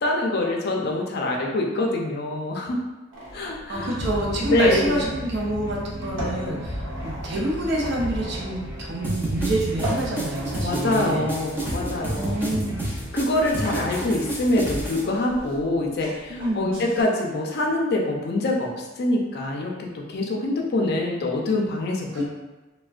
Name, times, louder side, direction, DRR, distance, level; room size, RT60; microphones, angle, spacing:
voice 1, 0.0-2.8 3.3-3.9 4.5-5.1 10.6-12.4 13.1-22.3, left 2 dB, 55° left, 0 dB, 0.5 m, -25 dB
sound 1, 3.1-17.0, equal, 80° right, 1.0 m, -39 dB
sound 2, 3.7-14.8, equal, 25° right, 0.9 m, -36 dB
voice 2, 3.7-11.3 12.1-12.8 16.3-16.8 22.1-22.3, right 1 dB, 60° right, -2 dB, 0.6 m, -27 dB
sound 3, 9.0-15.0, right 1 dB, 10° right, 0.5 m, -30 dB
3.3 x 2.1 x 2.4 m, 1.1 s
head